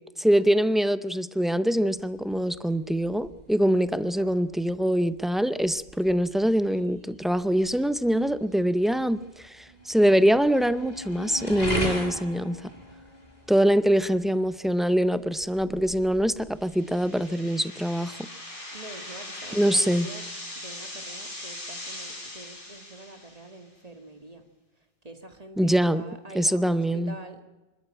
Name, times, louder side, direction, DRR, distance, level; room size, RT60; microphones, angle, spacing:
voice 1, 0.2-12.7 13.5-18.3 19.5-20.1 25.6-26.0 26.3-27.1, equal, ahead, 14 dB, 0.4 m, -24 dB
sound 1, 1.8-17.3, equal, 40° left, 5.1 m, -39 dB
voice 2, 4.0-4.3 18.7-20.2 20.6-24.4 25.0-27.4, right 2 dB, 40° right, 6 dB, 2.0 m, -45 dB
sound 2, 16.6-23.6, left 1 dB, 60° left, 4.2 m, -40 dB
25.5 x 12.5 x 8.9 m, 1.1 s
omnidirectional pair, 1.0 m